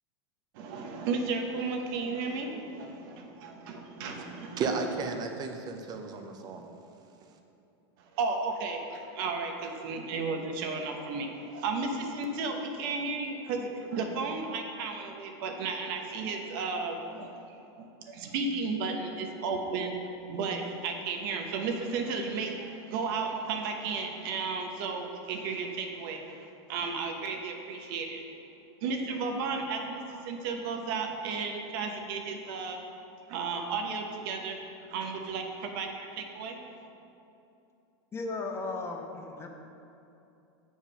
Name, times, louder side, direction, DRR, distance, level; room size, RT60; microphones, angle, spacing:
voice 1, 0.5-4.7 8.1-20.0 20.3-28.2 28.8-32.8 33.3-34.6 34.9-36.6, right 4 dB, 55° right, 3 dB, 1.0 m, -34 dB
voice 2, 4.6-6.6, right 4 dB, 30° right, 4 dB, 0.7 m, -33 dB
voice 3, 38.1-39.5, left 3 dB, 20° left, 3 dB, 0.6 m, -35 dB
7.2 x 4.8 x 5.5 m, 2.8 s
supercardioid pair, 135°, 14 cm